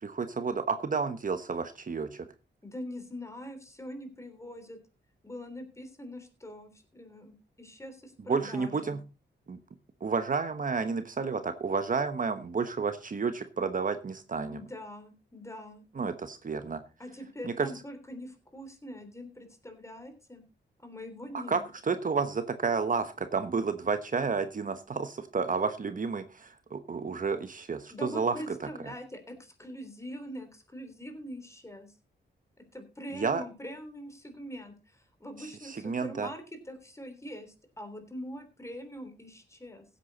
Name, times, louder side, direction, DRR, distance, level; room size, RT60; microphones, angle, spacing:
voice 1, 0.0-2.3 8.3-9.0 9.5-9.6 10.0-14.6 16.0-16.8 17.4-17.7 21.3-28.6 33.2-33.4 35.4-36.3, right 5 dB, 45° right, 10 dB, 1.1 m, -31 dB
voice 2, 2.6-4.8 5.2-9.0 14.5-15.8 17.0-20.4 20.8-21.7 27.9-31.9 32.6-39.8, equal, 15° left, 8 dB, 3.3 m, -43 dB
16.0 x 8.4 x 4.0 m, 0.30 s
cardioid pair, 90°, 19 cm